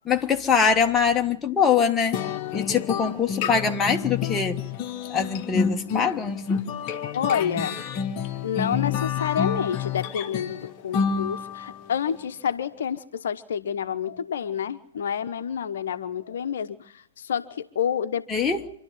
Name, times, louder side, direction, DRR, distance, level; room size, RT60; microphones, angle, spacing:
voice 1, 0.0-2.2 2.5-4.6 5.1-6.6 18.3-18.6, left 6 dB, 10° left, 1.3 m, -23 dB
sound 1, 2.1-11.8, left 6 dB, 35° left, 1.2 m, -29 dB
voice 2, 7.1-7.8 8.4-18.3, left 8 dB, 55° left, 1.0 m, -29 dB
27.0 x 12.0 x 9.6 m
figure-of-eight pair, 115°, 0 cm